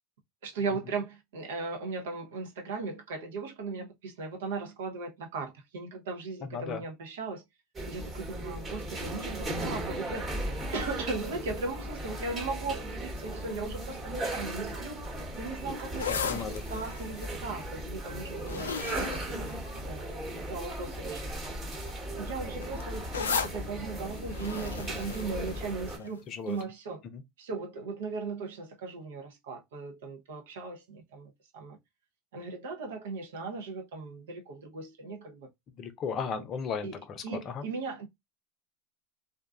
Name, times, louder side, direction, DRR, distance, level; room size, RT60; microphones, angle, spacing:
voice 1, 0.4-7.4 7.9-10.3 10.7-15.1 15.4-16.4 16.7-19.5 19.8-21.3 22.2-27.0 27.4-31.8 32.3-35.5 36.8-37.0 37.2-38.1, right 4 dB, 75° right, 0.7 m, -38 dB
voice 2, 6.4-6.8 16.1-16.6 26.0-26.6 27.1-27.2 35.7-37.6, left 6 dB, 40° left, 0.6 m, -36 dB
sound 1, 7.8-26.0, right 1 dB, 30° right, 1.1 m, -37 dB
sound 2, 15.8-20.2 21.0-21.3 21.5-26.2 26.6-26.7, left 6 dB, 85° left, 0.4 m, -37 dB
2.5 x 2.3 x 2.3 m
hypercardioid pair, 90°, 0 cm